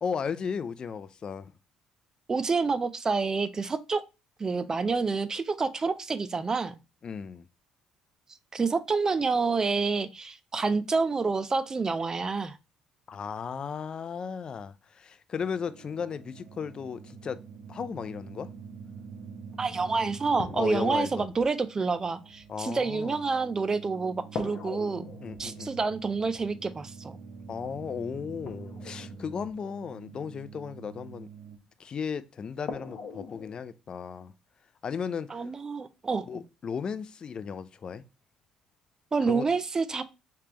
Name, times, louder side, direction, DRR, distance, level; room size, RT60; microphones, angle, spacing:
voice 1, 0.0-1.5 7.0-7.5 13.1-17.4 17.7-18.5 20.6-21.3 22.5-23.2 25.2-25.7 27.5-31.3 31.8-34.3 34.8-35.5 36.3-38.0 39.3-39.5, left 6 dB, 40° left, 0.4 m, -35 dB
voice 2, 2.3-4.0 4.4-6.7 8.5-12.6 19.6-25.1 25.4-27.2 35.3-36.2 39.1-40.0, right 4 dB, 30° right, 0.4 m, -28 dB
sound 1, 15.4-31.6, right 5 dB, 75° right, 0.6 m, -46 dB
sound 2, 19.5-19.6 20.4-23.8 24.4-30.5 31.8-31.9 32.7-33.6, left 5 dB, 55° left, 0.8 m, -43 dB
3.3 x 3.3 x 2.8 m
supercardioid pair, 75°, 2 cm